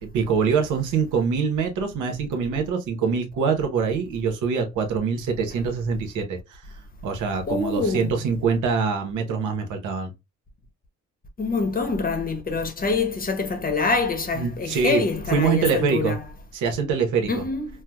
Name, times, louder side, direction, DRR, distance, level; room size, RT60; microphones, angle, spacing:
voice 1, 0.0-6.6 7.0-10.1 14.3-15.0 15.3-16.1 16.5-17.4, right 5 dB, 80° right, 0.9 m, -24 dB
voice 2, 7.5-8.1 11.4-16.2 17.3-17.7, left 4 dB, 30° left, 0.8 m, -25 dB
4.4 x 2.1 x 2.2 m
cardioid pair, 90°, 30 cm